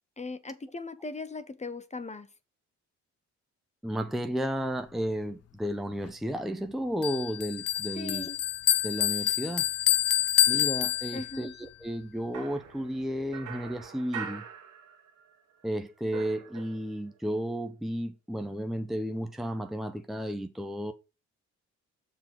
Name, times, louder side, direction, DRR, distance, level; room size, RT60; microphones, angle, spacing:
voice 1, 0.2-2.3 8.0-8.4 11.1-11.5, left 3 dB, 20° left, 0.9 m, -38 dB
voice 2, 3.8-8.3 8.8-9.7 10.5-14.4 15.6-20.9, equal, ahead, 0.7 m, -33 dB
Bell, 7.0-11.5, left 13 dB, 55° left, 0.5 m, -27 dB
sound 1, 12.3-15.4 15.6-17.1, right 7 dB, 85° right, 1.7 m, -43 dB
6.7 x 3.9 x 6.0 m
cardioid pair, 90°, 30 cm